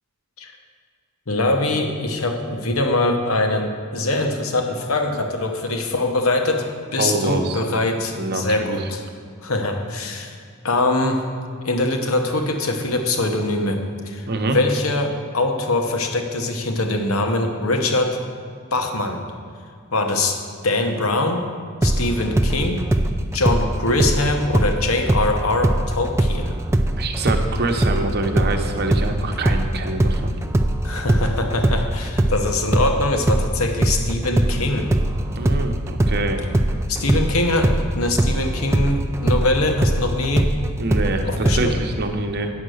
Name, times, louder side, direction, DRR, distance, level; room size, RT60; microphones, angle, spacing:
voice 1, 1.3-9.0 9.4-10.4 10.6-11.2 11.6-14.3 14.5-18.2 18.7-19.2 19.9-20.4 20.6-21.5 21.8-22.9 23.3-26.6 30.8-34.9 36.9-40.5 41.2-41.8, left 2 dB, 70° left, 4 dB, 1.0 m, -22 dB
voice 2, 7.0-7.6 8.1-8.8 14.3-14.6 27.0-30.3 35.4-36.4 40.8-42.5, right 2 dB, 50° right, 5 dB, 0.9 m, -25 dB
sound 1, 21.8-25.3 25.6-33.5 33.8-41.6, right 1 dB, 10° right, 0.3 m, -20 dB
9.4 x 6.6 x 6.4 m, 2.2 s
head